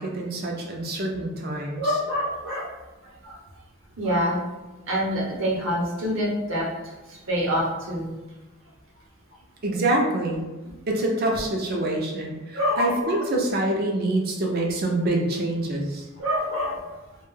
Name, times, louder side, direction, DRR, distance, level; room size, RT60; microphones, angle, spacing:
voice 1, 0.0-2.0 9.6-10.4 10.9-16.1, right 1 dB, 45° right, 0 dB, 0.4 m, -26 dB
voice 2, 1.8-2.7 3.2-3.4 4.0-4.4 4.9-6.7 7.1-8.1 12.5-13.2 16.2-16.8, equal, 65° right, -4 dB, 0.8 m, -26 dB
2.2 x 2.1 x 3.1 m, 1.1 s
head